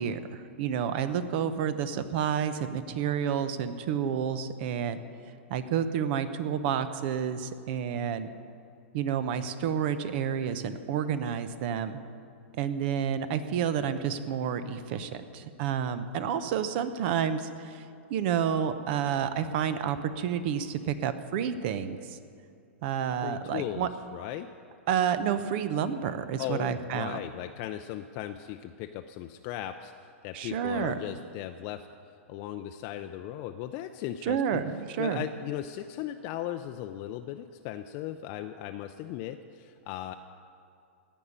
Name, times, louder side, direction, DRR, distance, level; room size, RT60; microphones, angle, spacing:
voice 1, 0.0-5.0 5.5-8.3 8.9-12.0 12.6-17.8 18.1-22.2 22.8-23.9 24.9-27.2 30.3-31.0 34.2-35.2, right 8 dB, 50° right, 12 dB, 0.8 m, -30 dB
voice 2, 23.2-24.5 26.4-29.9 30.2-31.9 32.3-34.6 35.0-40.1, left 12 dB, 40° left, 7 dB, 0.5 m, -37 dB
16.5 x 5.5 x 8.7 m, 2.5 s
hypercardioid pair, 125°, 7 cm